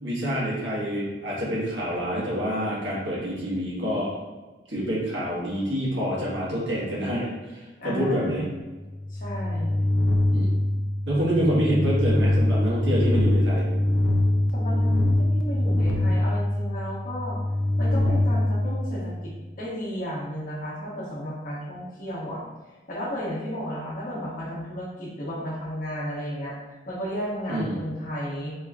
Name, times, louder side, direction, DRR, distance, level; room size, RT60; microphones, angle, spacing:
voice 1, 0.0-4.1 4.7-8.5 10.3-10.5 11.1-13.7 27.5-27.8, equal, 80° right, -6 dB, 1.4 m, -27 dB
voice 2, 7.8-8.5 9.1-9.9 14.5-17.4 17.8-22.4 22.9-26.6 26.9-28.5, equal, 45° left, -5 dB, 1.0 m, -33 dB
sound 1, 8.8-19.4, left 1 dB, 85° left, 0.5 m, -24 dB
4.3 x 2.8 x 2.3 m, 1.2 s
head